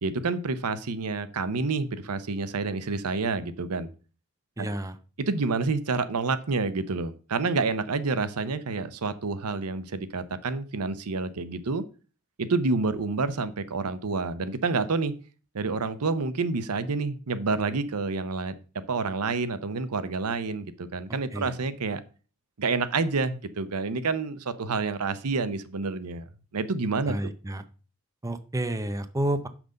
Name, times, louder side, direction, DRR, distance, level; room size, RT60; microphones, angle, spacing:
voice 1, 0.0-3.9 4.6-4.7 5.2-11.8 12.4-15.1 15.5-18.5 18.9-22.0 22.6-26.3 26.5-27.1, right 4 dB, 90° right, 13 dB, 0.7 m, -28 dB
voice 2, 4.6-5.0 21.3-21.5 27.1-27.6 28.2-29.5, right 1 dB, 15° right, 10 dB, 0.6 m, -30 dB
6.0 x 5.1 x 6.7 m, 0.36 s
head